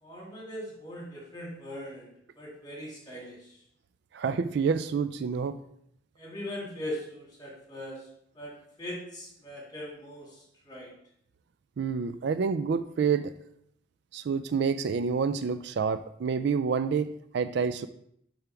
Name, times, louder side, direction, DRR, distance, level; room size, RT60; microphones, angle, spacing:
voice 1, 0.0-2.1 2.4-3.6 6.2-8.0 8.3-10.9, left 1 dB, 20° left, -3 dB, 2.2 m, -40 dB
voice 2, 4.1-5.6 11.8-13.3 14.1-17.9, right 6 dB, 60° right, 12 dB, 0.3 m, -28 dB
6.7 x 3.6 x 5.8 m, 0.71 s
head